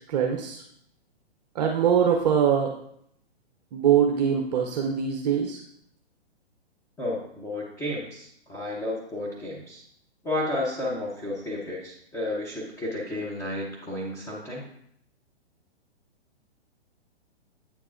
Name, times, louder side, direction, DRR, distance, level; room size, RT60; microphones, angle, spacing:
voice 1, 0.1-0.6 1.5-2.8 3.7-5.6, right 8 dB, 40° right, 2 dB, 0.6 m, -23 dB
voice 2, 7.0-9.8 10.2-14.7, left 1 dB, 10° left, -6 dB, 0.8 m, -32 dB
8.5 x 4.6 x 2.5 m, 0.72 s
hypercardioid pair, 130°, 33 cm